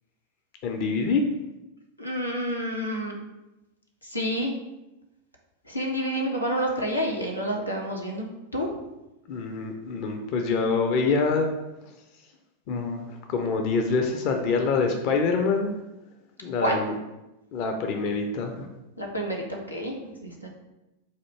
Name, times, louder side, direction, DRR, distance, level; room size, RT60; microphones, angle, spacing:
voice 1, 0.6-1.2 9.3-11.5 12.7-15.7 16.4-17.0 17.5-18.7, left 4 dB, 45° left, 4 dB, 0.5 m, -25 dB
voice 2, 2.0-3.2 4.0-4.5 5.7-8.3 8.5-8.7 16.6-16.8 19.0-20.5, equal, 85° left, -1 dB, 0.7 m, -29 dB
4.3 x 2.4 x 4.5 m, 0.98 s
figure-of-eight pair, 90°, 0 cm